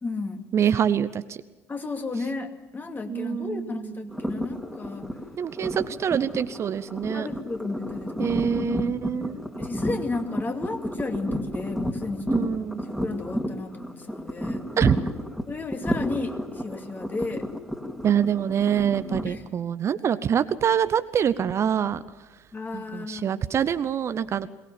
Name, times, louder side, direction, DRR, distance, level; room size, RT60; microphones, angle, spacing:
voice 1, 0.0-0.5 1.7-5.1 7.1-8.3 9.6-12.5 13.0-14.6 15.5-17.5 19.2-19.4 22.5-23.4, left 3 dB, 25° left, 5 dB, 2.4 m, -33 dB
voice 2, 0.5-1.4 3.1-4.1 5.4-7.3 8.2-9.4 12.3-12.8 14.8-15.0 18.0-22.0 22.7-24.5, right 8 dB, 40° right, 13 dB, 0.7 m, -25 dB
sound 1, 4.1-19.3, equal, 5° left, 2.8 m, -31 dB
22.5 x 19.0 x 7.4 m, 1.1 s
figure-of-eight pair, 55°, 7 cm